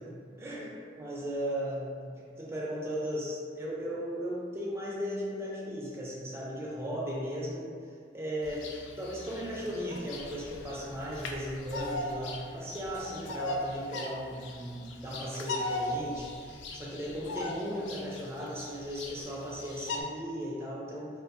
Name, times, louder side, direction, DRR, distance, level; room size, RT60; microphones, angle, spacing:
voice 1, 0.0-7.7 8.1-8.7 9.0-21.1, equal, 15° right, -6 dB, 0.4 m, -36 dB
Bird vocalization bird call bird song, 8.4-20.0, left 2 dB, 90° left, 0.3 m, -39 dB
2.6 x 2.5 x 2.5 m, 2.1 s
head